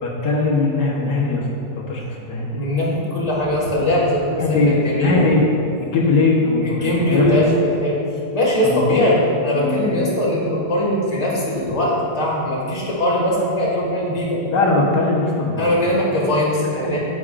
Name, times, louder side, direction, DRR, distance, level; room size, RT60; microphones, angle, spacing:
voice 1, 0.0-1.5 1.8-2.6 4.3-5.5 5.8-7.4 8.6-9.0 9.6-10.1 14.5-16.3 16.6-17.0, left 3 dB, 80° left, -4 dB, 1.8 m, -20 dB
voice 2, 2.5-5.2 6.6-8.0 8.3-14.4 15.6-17.0, left 1 dB, 20° left, -5 dB, 1.8 m, -20 dB
9.6 x 8.7 x 2.5 m, 2.7 s
omnidirectional pair, 1.8 m